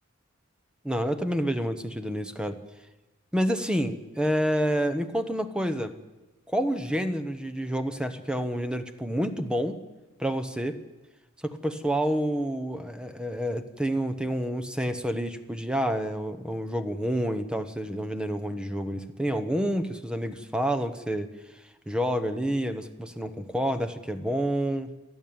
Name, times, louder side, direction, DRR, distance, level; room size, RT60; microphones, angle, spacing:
voice 1, 0.8-2.6 3.3-5.9 6.5-9.8 10.2-10.8 11.4-21.3 21.9-24.9, equal, 5° right, 9 dB, 1.1 m, -28 dB
29.0 x 11.0 x 8.8 m, 1.0 s
head